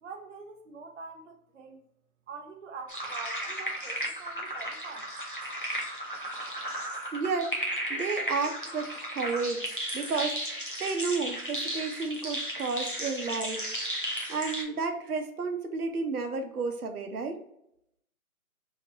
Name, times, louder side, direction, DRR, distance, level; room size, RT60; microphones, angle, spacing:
voice 1, 0.0-1.9 2.3-5.1, right 4 dB, 60° right, 3 dB, 0.5 m, -45 dB
sound 1, 2.9-14.6, equal, 40° left, 0.5 m, -35 dB
voice 2, 7.1-7.5 7.9-13.6 14.3-17.4, right 4 dB, 90° right, 5 dB, 0.8 m, -32 dB
3.0 x 2.8 x 2.8 m, 0.77 s
hypercardioid pair, 180°, 43 cm